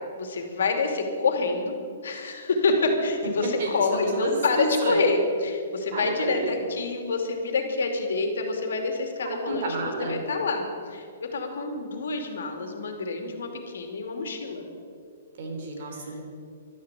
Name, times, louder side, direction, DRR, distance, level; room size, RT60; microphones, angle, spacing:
voice 1, 0.2-1.7 2.0-14.6 16.0-16.1, left 3 dB, 75° left, 4 dB, 2.7 m, -27 dB
voice 2, 3.6-5.0 5.9-6.6 9.2-10.2 15.4-16.2, right 2 dB, 45° right, 1 dB, 3.7 m, -30 dB
12.5 x 11.5 x 8.3 m, 2.4 s
hypercardioid pair, 175°, 0 cm